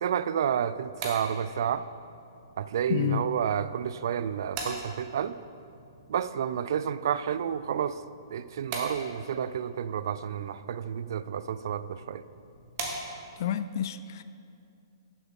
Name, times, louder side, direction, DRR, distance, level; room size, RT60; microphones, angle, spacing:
voice 1, 0.0-1.8 2.6-5.3 6.1-8.0 8.3-12.2, right 8 dB, 60° right, 15 dB, 0.3 m, -30 dB
sound 1, 0.6-13.5, right 3 dB, 40° right, 1.6 m, -43 dB
voice 2, 2.9-3.2 13.4-14.2, left 10 dB, 55° left, 12 dB, 0.4 m, -29 dB
11.5 x 7.0 x 3.7 m, 2.5 s
hypercardioid pair, 130°, 2 cm